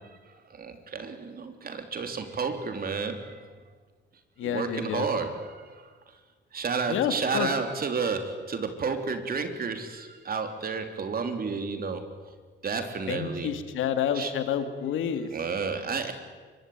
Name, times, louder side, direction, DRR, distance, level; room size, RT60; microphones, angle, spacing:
voice 1, 0.5-3.5 4.4-5.8 6.5-12.1 12.6-13.5 14.1-14.3 15.3-16.1, right 5 dB, 50° right, 7 dB, 3.6 m, -31 dB
voice 2, 4.4-5.1 6.9-7.5 13.1-15.3, left 8 dB, 85° left, 9 dB, 2.6 m, -29 dB
25.5 x 23.0 x 9.6 m, 1.5 s
cardioid pair, 90°, 20 cm